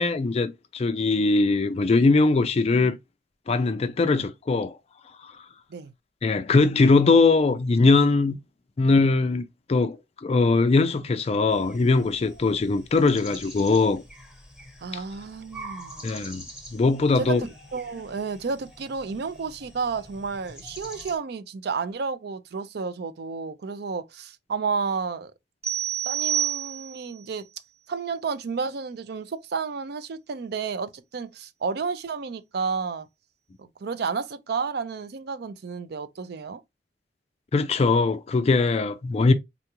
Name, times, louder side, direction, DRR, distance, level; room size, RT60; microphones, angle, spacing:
voice 1, 0.0-3.0 3.5-4.8 5.2-5.3 6.2-8.4 8.8-9.4 9.7-10.0 10.2-14.0 14.9-15.0 16.0-16.4 16.7-17.4 37.5-39.3, left 3 dB, 35° left, 0.3 m, -21 dB
sound 1, 11.5-21.2, equal, 5° right, 0.9 m, -45 dB
voice 2, 14.8-16.1 17.2-25.3 26.0-27.5 27.9-33.1 33.6-36.6, right 5 dB, 60° right, 0.4 m, -31 dB
sound 2, 25.6-27.2, right 10 dB, 35° right, 1.1 m, -28 dB
3.6 x 2.4 x 2.8 m
head